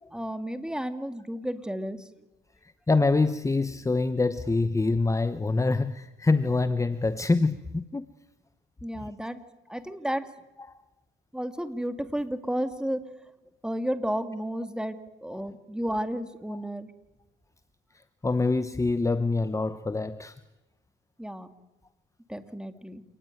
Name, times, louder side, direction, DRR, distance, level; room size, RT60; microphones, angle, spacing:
voice 1, 0.1-2.1 8.8-9.4 9.7-10.3 11.3-13.0 13.6-16.9 21.2-21.5 22.3-23.0, equal, 5° right, 2.4 m, -32 dB
voice 2, 2.6-8.1 9.0-9.1 10.7-10.8 18.2-20.4, left 3 dB, 15° left, 1.0 m, -25 dB
28.5 x 19.0 x 9.3 m
cardioid pair, 90°, 20 cm